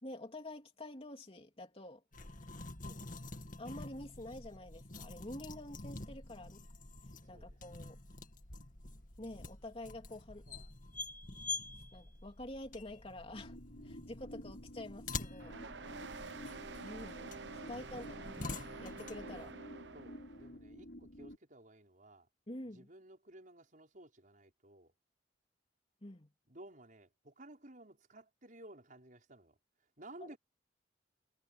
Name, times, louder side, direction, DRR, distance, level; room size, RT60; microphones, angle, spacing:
voice 1, 0.0-2.0 3.6-6.6 7.3-8.0 9.2-10.5 11.9-13.6 13.8-15.6 16.8-17.3 17.7-18.5 18.8-19.5 22.5-22.9 26.0-26.3 30.2-30.4, left 1 dB, 35° left, 3.2 m, -48 dB
sound 1, 2.1-19.5, left 3 dB, 50° left, 2.1 m, -47 dB
sound 2, 13.3-21.4, equal, 65° left, 5.7 m, -51 dB
sound 3, 15.4-20.5, right 4 dB, 80° right, 1.1 m, -49 dB
voice 2, 19.9-22.3 22.7-24.9 26.5-29.6 30.0-30.4, right 1 dB, 50° right, 5.8 m, -56 dB
head